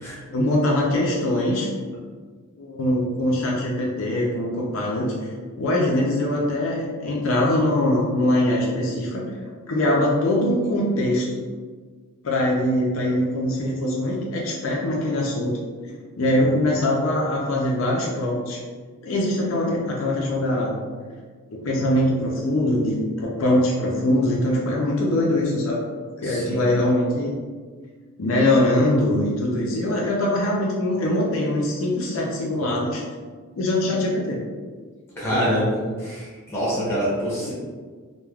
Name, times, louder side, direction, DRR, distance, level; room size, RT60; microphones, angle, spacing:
voice 1, 0.3-1.7 2.6-5.1 5.6-9.3 9.7-11.2 12.2-15.6 16.2-18.6 19.0-20.7 21.5-25.8 26.2-27.4 28.2-33.0 33.6-34.4 35.3-35.7 37.4-37.5, left 1 dB, 65° left, -3 dB, 0.4 m, -22 dB
voice 2, 26.2-26.7 35.2-35.8 36.0-37.5, equal, 10° left, -7 dB, 0.9 m, -26 dB
3.2 x 2.2 x 2.3 m, 1.5 s
head